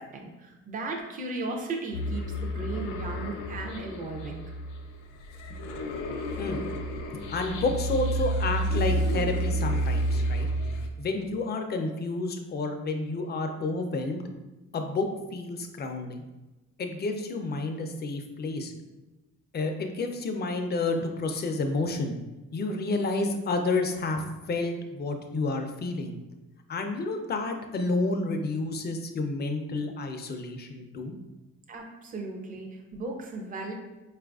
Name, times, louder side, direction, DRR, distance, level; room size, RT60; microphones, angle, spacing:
voice 1, 0.0-4.4 31.7-33.7, right 2 dB, 30° right, 1 dB, 0.5 m, -36 dB
sound 1, 1.9-10.9, right 1 dB, 90° left, 0.5 m, -30 dB
voice 2, 7.1-10.5 11.0-14.2 14.7-16.2 16.8-18.7 19.5-22.2 22.5-26.1 26.7-31.1, left 3 dB, 35° left, 5 dB, 0.4 m, -30 dB
4.4 x 2.4 x 2.3 m, 1.1 s
cardioid pair, 90°, 30 cm